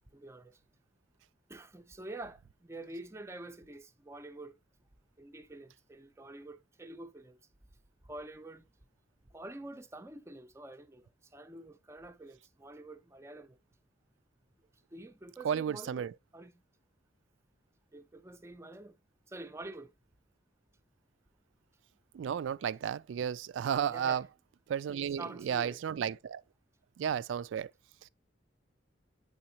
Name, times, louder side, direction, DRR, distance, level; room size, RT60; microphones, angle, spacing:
voice 1, 0.1-0.6 1.5-4.6 5.2-7.4 8.0-8.7 9.3-13.6 14.9-16.6 17.9-19.0 19.3-19.9 23.9-24.3 24.9-25.8, right 2 dB, 15° right, 0.5 m, -47 dB
voice 2, 15.4-16.1 22.1-24.2 24.7-26.4 27.0-27.7, right 8 dB, 85° right, 0.3 m, -33 dB
8.6 x 3.9 x 2.8 m
head